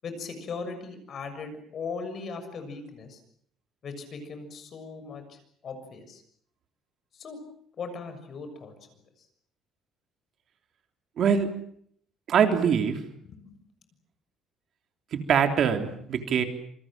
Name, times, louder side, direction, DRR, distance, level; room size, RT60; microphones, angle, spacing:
voice 1, 0.0-3.2 3.8-5.4 5.6-6.2 7.1-7.4 7.8-8.7 13.2-13.5, left 4 dB, 40° left, 9 dB, 6.6 m, -38 dB
voice 2, 11.2-11.5 12.3-13.0 15.1-16.4, right 7 dB, 45° right, 5 dB, 3.3 m, -23 dB
27.5 x 25.0 x 7.5 m, 0.65 s
cardioid pair, 155°, 0 cm